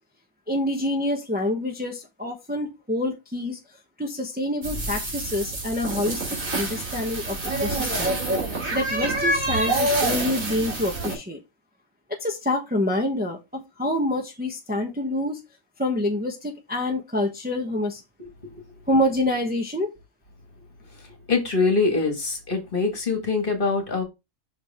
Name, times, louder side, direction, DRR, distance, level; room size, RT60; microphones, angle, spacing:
voice 1, 0.5-3.6 4.0-8.2 8.5-11.4 12.2-15.4 15.8-18.0 18.9-19.9, left 1 dB, 10° right, 1.0 m, -27 dB
sound 1, 4.6-11.1, right 2 dB, 85° right, 3.0 m, -27 dB
voice 2, 21.3-24.0, left 4 dB, 40° left, 2.0 m, -23 dB
6.2 x 4.8 x 3.6 m
omnidirectional pair, 1.4 m